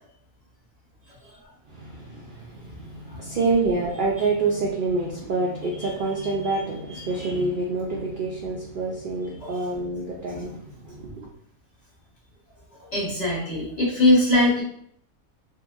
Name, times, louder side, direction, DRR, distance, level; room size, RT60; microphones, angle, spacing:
voice 1, 1.7-11.3, right 3 dB, 80° right, -3 dB, 0.4 m, -27 dB
voice 2, 2.7-3.2 5.8-5.9 6.2-6.6 6.9-7.3 9.4-9.7 10.3-10.4 12.8-14.6, left 1 dB, 35° left, -6 dB, 0.8 m, -24 dB
2.8 x 2.6 x 2.4 m, 0.66 s
omnidirectional pair, 1.4 m